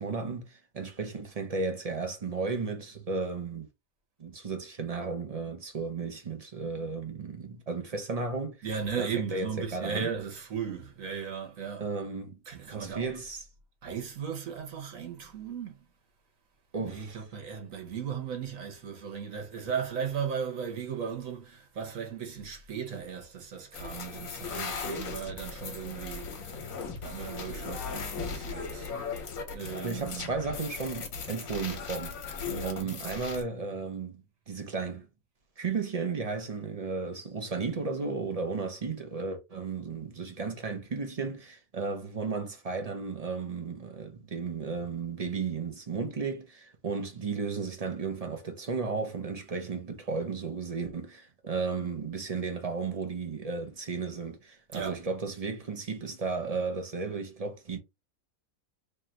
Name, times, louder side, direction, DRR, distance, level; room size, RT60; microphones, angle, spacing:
voice 1, 0.0-3.7 4.2-8.6 9.0-10.1 11.8-12.4 12.7-13.4 16.7-17.2 29.8-32.1 32.6-35.1 35.6-57.8, right 4 dB, 35° right, 0.7 m, -34 dB
voice 2, 8.6-11.8 12.5-13.1 13.8-15.8 16.8-26.6 27.0-28.9 29.5-30.4 32.4-33.0 54.7-55.0, right 7 dB, 65° right, 1.5 m, -36 dB
sound 1, 23.7-33.4, left 5 dB, 70° left, 1.4 m, -38 dB
3.3 x 2.5 x 4.3 m
omnidirectional pair, 1.5 m